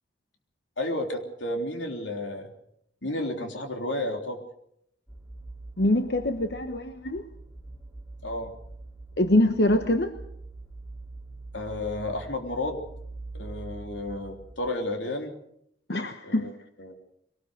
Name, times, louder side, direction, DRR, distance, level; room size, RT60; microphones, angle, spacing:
voice 1, 0.8-2.5 3.0-4.4 8.2-8.5 11.5-12.9 13.3-15.4 16.2-16.5 16.8-17.0, left 1 dB, 90° left, 4 dB, 3.5 m, -32 dB
sound 1, 5.1-14.7, right 2 dB, 5° left, 3.3 m, -44 dB
voice 2, 5.8-7.2 9.2-10.1 15.9-16.5, left 1 dB, 60° left, 7 dB, 1.2 m, -24 dB
23.0 x 19.0 x 6.6 m, 0.72 s
head